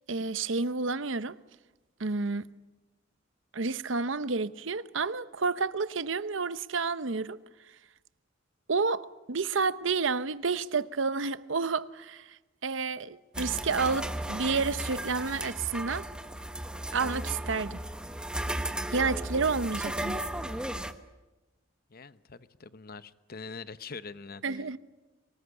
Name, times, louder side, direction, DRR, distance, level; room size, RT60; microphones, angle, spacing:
voice 1, 0.1-1.4 2.0-2.5 3.5-7.4 8.7-12.4 12.6-16.0 16.9-17.8 18.9-20.2 24.4-24.8, right 4 dB, 70° right, 0.9 m, -30 dB
sound 1, 13.3-20.9, right 1 dB, 5° right, 1.1 m, -35 dB
voice 2, 21.9-24.8, left 4 dB, 50° left, 0.9 m, -44 dB
24.5 x 20.0 x 9.8 m
head